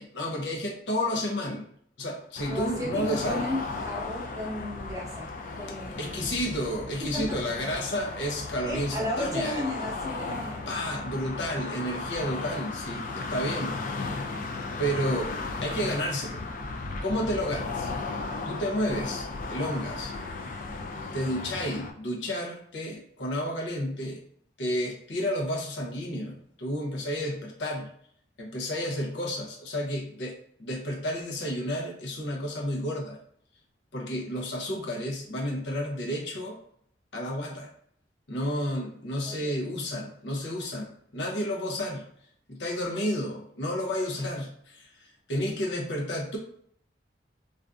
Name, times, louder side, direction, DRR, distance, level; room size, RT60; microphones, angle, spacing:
voice 1, 0.0-1.6 2.0-3.4 6.0-9.6 10.7-14.2 14.8-16.5 17.0-17.9 18.4-20.1 21.1-24.2 24.6-27.9 28.4-30.3 30.6-33.2 33.9-36.6 37.1-37.7 38.3-42.0 42.5-46.4, equal, 85° left, 0 dB, 0.7 m, -31 dB
sound 1, 2.4-21.9, left 3 dB, 50° left, 0.3 m, -35 dB
voice 2, 2.4-3.6 3.9-5.3 5.6-6.6 7.1-7.4 8.7-10.7 39.3-39.6, left 1 dB, 20° right, -4 dB, 0.8 m, -34 dB
2.5 x 2.4 x 2.3 m, 0.64 s
head